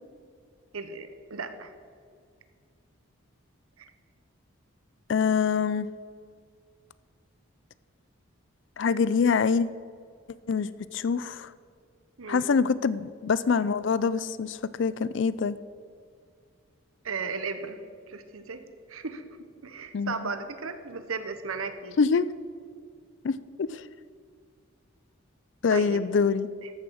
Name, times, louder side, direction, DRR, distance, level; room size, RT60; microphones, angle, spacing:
voice 1, 0.7-1.7 3.8-3.9 12.2-12.5 17.0-17.8 18.1-18.6 18.9-19.2 19.6-22.0 25.7-26.0 26.6-26.7, right 4 dB, 80° right, 10 dB, 0.9 m, -35 dB
voice 2, 5.1-5.9 8.8-9.7 10.5-11.5 12.3-15.6 19.9-20.3 22.0-22.3 23.2-23.3 23.6-23.8 25.6-26.5, left 5 dB, 60° left, 17 dB, 0.4 m, -25 dB
14.0 x 6.8 x 6.3 m, 2.2 s
head